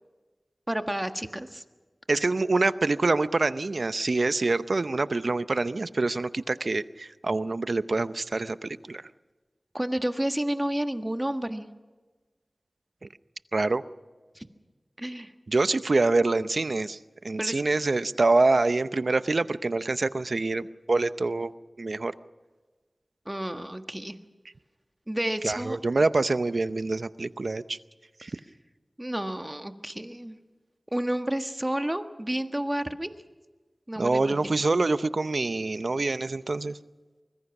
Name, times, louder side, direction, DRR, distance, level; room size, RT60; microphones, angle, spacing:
voice 1, 0.7-1.6 9.7-11.6 14.3-14.5 15.0-15.3 17.4-17.6 23.2-24.2 25.1-25.8 29.0-30.4 30.9-33.1 33.9-34.6, right 1 dB, 20° right, 7 dB, 1.5 m, -30 dB
voice 2, 2.1-9.0 13.5-13.8 15.5-17.0 17.2-21.5 21.8-22.1 25.4-27.8 28.2-28.3 34.0-36.8, right 3 dB, 70° right, 13 dB, 0.7 m, -25 dB
24.5 x 21.5 x 6.0 m, 1.3 s
wide cardioid pair, 45°, 0 cm